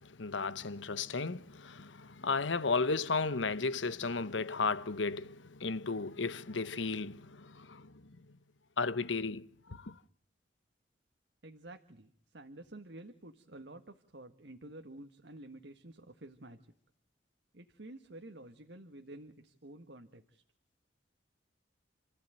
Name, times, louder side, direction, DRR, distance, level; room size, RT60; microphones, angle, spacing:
voice 1, 0.0-8.2 8.8-9.9, left 4 dB, 90° left, 1.1 m, -34 dB
voice 2, 11.4-16.6 17.5-20.4, right 1 dB, 65° right, 1.7 m, -50 dB
29.5 x 15.0 x 9.2 m
head